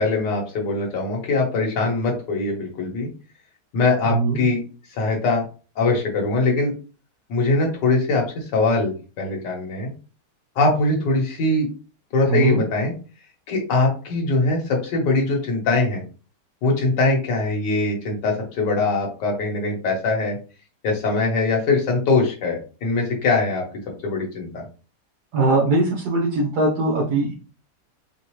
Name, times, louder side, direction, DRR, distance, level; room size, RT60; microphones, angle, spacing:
voice 1, 0.0-3.1 3.7-4.6 4.9-5.4 5.8-6.7 7.3-9.9 10.6-11.7 12.1-12.9 13.5-16.0 16.6-20.4 20.8-23.6 24.0-24.6, left 3 dB, 80° left, 0 dB, 1.8 m, -22 dB
voice 2, 4.0-4.4 12.3-12.6 25.3-27.3, right 2 dB, 70° right, -4 dB, 1.5 m, -21 dB
4.5 x 2.5 x 3.0 m, 0.35 s
omnidirectional pair, 1.9 m